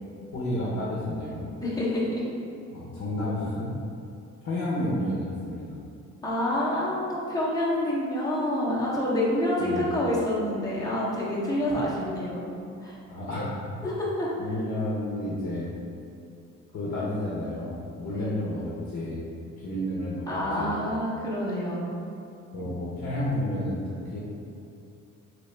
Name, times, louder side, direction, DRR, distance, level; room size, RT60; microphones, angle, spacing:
voice 1, 0.3-1.4 2.7-3.7 4.4-5.8 9.6-9.9 13.1-13.6 14.4-15.7 16.7-19.3 19.6-20.8 22.5-24.2, left 1 dB, 50° left, -7 dB, 0.9 m, -31 dB
voice 2, 1.6-2.2 6.2-12.4 12.8-13.0 13.8-14.3 18.1-18.4 20.3-21.9, left 1 dB, 10° left, -7 dB, 0.9 m, -27 dB
3.1 x 3.0 x 3.2 m, 2.5 s
cardioid pair, 90°, 30 cm